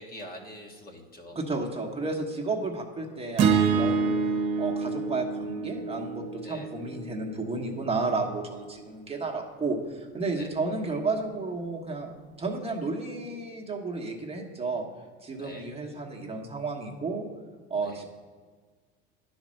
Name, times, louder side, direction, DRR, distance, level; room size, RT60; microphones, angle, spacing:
voice 1, 0.0-1.7 6.4-6.7 10.3-10.5 15.4-15.7 17.8-18.0, left 1 dB, 25° left, 2 dB, 1.3 m, -44 dB
voice 2, 1.3-4.2 4.6-14.9 15.2-17.2 17.7-18.0, right 3 dB, 15° right, 0 dB, 1.2 m, -32 dB
sound 1, 3.4-7.6, right 5 dB, 50° right, 1.1 m, -27 dB
10.0 x 4.4 x 6.3 m, 1.5 s
supercardioid pair, 105°, 34 cm